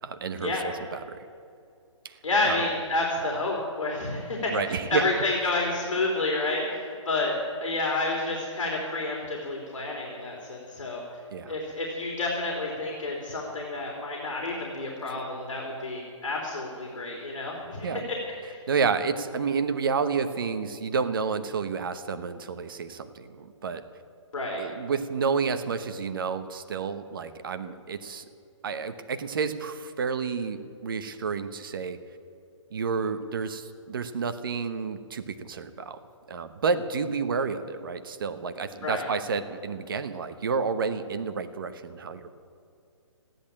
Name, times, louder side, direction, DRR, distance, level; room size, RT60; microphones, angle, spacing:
voice 1, 0.0-1.2 2.0-2.2 2.4-2.7 4.5-5.1 11.3-11.6 15.0-15.2 17.8-18.0 18.7-23.8 24.6-28.2 28.6-32.0 32.7-36.0 36.3-42.3, right 5 dB, 45° right, 10 dB, 1.0 m, -30 dB
voice 2, 2.2-7.3 7.6-11.0 11.5-18.2 18.5-18.6 24.3-24.6 38.8-39.0, left 2 dB, 70° left, -1 dB, 3.4 m, -29 dB
14.5 x 11.0 x 8.8 m, 2.5 s
hypercardioid pair, 170°, 17 cm